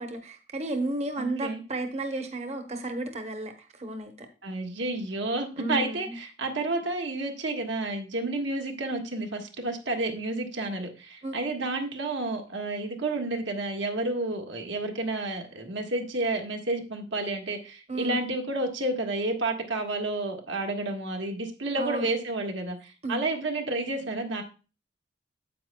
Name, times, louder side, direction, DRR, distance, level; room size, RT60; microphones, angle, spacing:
voice 1, 0.0-4.3 5.6-6.2 11.2-11.4 17.9-18.2 21.8-22.1 23.0-23.2, right 2 dB, 35° right, 6 dB, 0.9 m, -33 dB
voice 2, 1.2-1.6 4.4-24.4, right 2 dB, 80° right, 3 dB, 1.5 m, -30 dB
9.4 x 8.2 x 2.2 m, 0.34 s
head